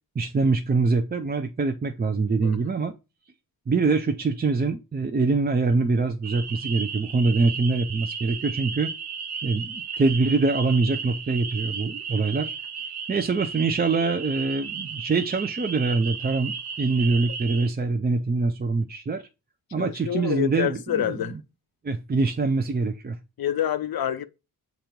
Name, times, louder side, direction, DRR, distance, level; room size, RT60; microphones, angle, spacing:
voice 1, 0.2-2.9 3.7-8.9 9.4-12.5 13.1-19.2 19.7-21.0 21.8-23.2, right 3 dB, 25° right, 0.4 m, -24 dB
sound 1, 6.2-17.7, right 6 dB, 90° right, 0.8 m, -34 dB
voice 2, 19.8-21.4 23.4-24.2, left 10 dB, 70° left, 0.5 m, -27 dB
7.9 x 3.0 x 5.0 m
wide cardioid pair, 165°, 38 cm